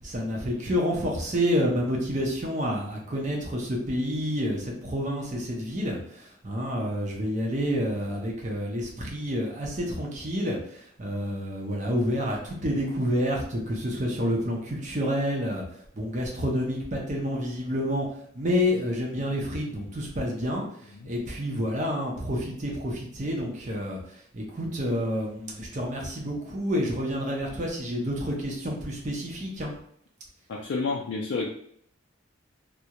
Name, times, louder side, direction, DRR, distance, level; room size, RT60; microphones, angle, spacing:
voice 1, 0.0-15.6 15.9-18.1 18.3-20.6 21.0-29.7, equal, 35° right, -1 dB, 0.6 m, -29 dB
voice 2, 30.5-31.5, left 4 dB, 70° left, -1 dB, 0.3 m, -29 dB
2.3 x 2.1 x 2.8 m, 0.66 s
head